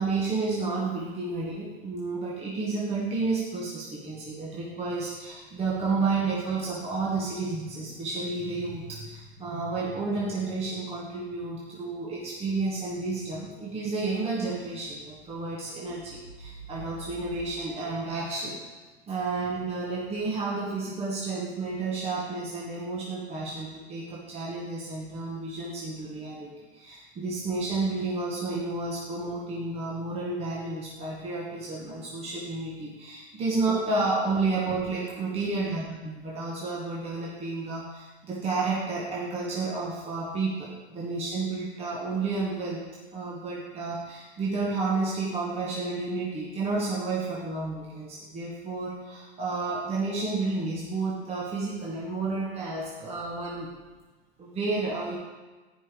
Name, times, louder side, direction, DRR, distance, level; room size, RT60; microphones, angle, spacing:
voice 1, 0.0-18.6 19.1-42.8 43.1-53.7 54.4-55.2, right 3 dB, 15° right, -5 dB, 1.3 m, -31 dB
14.5 x 5.3 x 3.8 m, 1.2 s
supercardioid pair, 145°, 35 cm